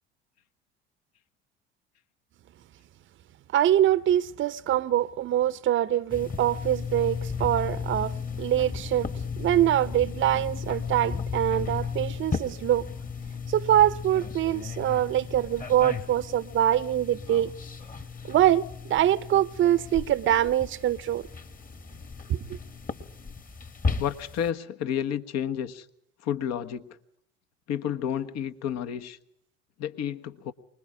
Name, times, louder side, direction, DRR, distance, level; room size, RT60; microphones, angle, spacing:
voice 1, 3.5-9.1 9.4-12.9 13.5-17.5 18.2-21.2 22.3-22.6, right 12 dB, 40° right, 0.7 m, -24 dB
sound 1, 6.1-24.5, left 5 dB, 30° left, 1.8 m, -35 dB
voice 2, 24.0-25.9 26.2-26.9 27.7-29.2 29.8-30.5, left 9 dB, 60° left, 1.4 m, -31 dB
24.5 x 21.0 x 4.9 m
hypercardioid pair, 75°, 30 cm